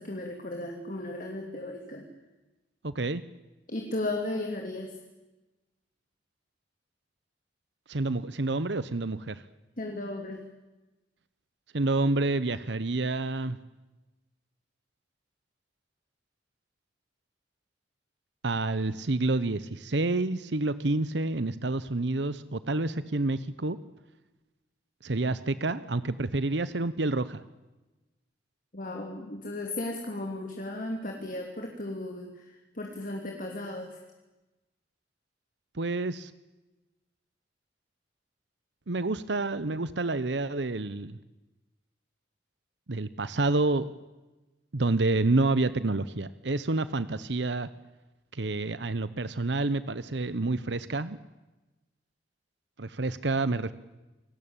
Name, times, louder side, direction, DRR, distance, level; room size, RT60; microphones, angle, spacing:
voice 1, 0.0-2.1 3.7-5.0 9.8-10.4 28.7-34.0, left 1 dB, 45° left, 2 dB, 3.0 m, -35 dB
voice 2, 2.8-3.2 7.9-9.4 11.7-13.6 18.4-23.8 25.0-27.4 35.7-36.3 38.9-41.2 42.9-43.9 44.7-47.7 48.3-51.2 52.8-53.7, right 2 dB, 70° right, 15 dB, 1.0 m, -28 dB
28.5 x 19.5 x 8.9 m, 1.1 s
head